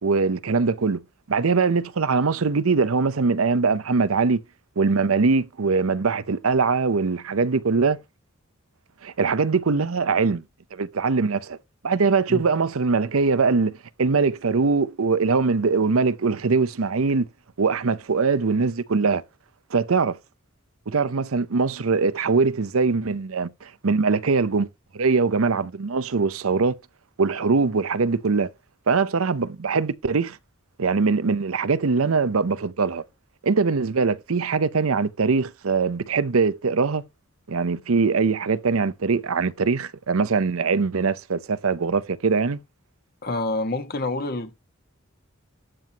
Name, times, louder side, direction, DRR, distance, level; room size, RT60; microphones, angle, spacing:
voice 1, 0.0-1.0 1.3-4.4 4.8-8.0 9.0-10.4 10.7-11.6 11.8-17.3 17.6-19.2 19.7-20.2 20.9-24.7 24.9-26.7 27.2-28.5 28.9-30.4 30.8-33.0 33.4-37.0 37.5-42.6, right 4 dB, 90° right, 0.7 m, -22 dB
voice 2, 43.2-44.5, left 2 dB, 45° left, 1.6 m, -27 dB
12.5 x 7.6 x 2.9 m
head